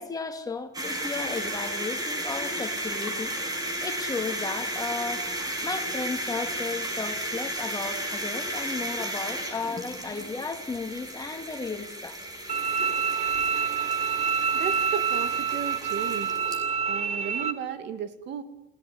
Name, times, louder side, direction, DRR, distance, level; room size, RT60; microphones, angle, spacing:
voice 1, 0.0-5.3 5.6-12.2, left 4 dB, 20° left, 5 dB, 2.9 m, -34 dB
sound 1, 0.7-16.6, right 1 dB, 20° right, 6.6 m, -34 dB
Bowed string instrument, 12.5-17.5, right 6 dB, 35° right, 2.6 m, -27 dB
voice 2, 14.5-16.4 16.9-18.4, right 8 dB, 65° right, 9 dB, 2.5 m, -34 dB
29.0 x 17.5 x 9.6 m, 0.83 s
cardioid pair, 135°, 20 cm